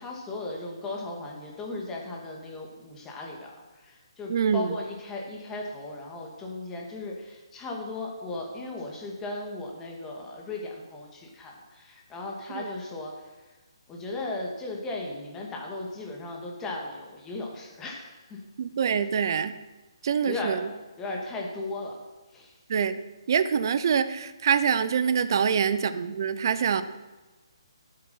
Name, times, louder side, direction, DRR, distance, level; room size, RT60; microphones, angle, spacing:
voice 1, 0.0-13.6 13.9-18.4 20.2-20.6 21.0-22.0 22.3-22.6 25.3-25.6, left 2 dB, 15° left, -1 dB, 2.2 m, -36 dB
voice 2, 4.3-4.8 12.5-12.7 18.6-19.5 20.0-20.6 22.7-23.0 23.3-26.8, right 7 dB, 50° right, 13 dB, 0.8 m, -25 dB
13.5 x 7.8 x 5.8 m, 1.2 s
hypercardioid pair, 155°, 3 cm